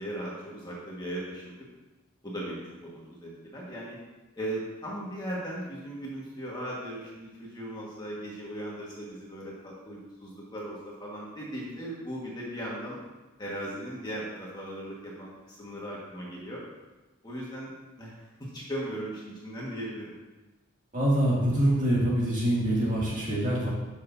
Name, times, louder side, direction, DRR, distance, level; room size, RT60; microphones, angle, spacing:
voice 1, 0.0-1.6 2.2-4.0 4.4-13.0 13.4-16.6 17.2-17.7 18.0-20.1, right 1 dB, 20° left, -5 dB, 1.7 m, -38 dB
voice 2, 20.9-23.7, right 1 dB, 35° right, -6 dB, 2.5 m, -25 dB
12.5 x 6.6 x 2.8 m, 1.1 s
head